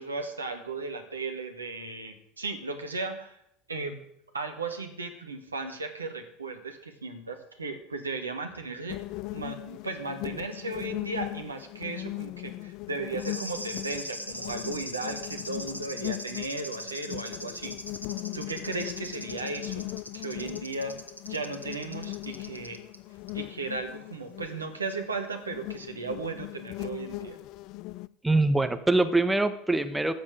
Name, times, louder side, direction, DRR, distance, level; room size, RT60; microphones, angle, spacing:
voice 1, 0.0-3.4 3.7-4.0 4.3-9.0 9.3-17.8 18.3-19.9 20.1-21.0 21.3-22.8 23.3-27.4, right 3 dB, 80° right, 5 dB, 1.8 m, -36 dB
sound 1, 8.9-28.1, left 20 dB, 50° left, 0.4 m, -39 dB
sound 2, 13.2-23.0 23.3-23.4, equal, 90° left, 1.0 m, -41 dB
voice 2, 28.2-30.1, right 2 dB, 10° right, 9 dB, 1.4 m, -24 dB
13.5 x 7.2 x 8.5 m, 0.75 s
figure-of-eight pair, 70°, 0 cm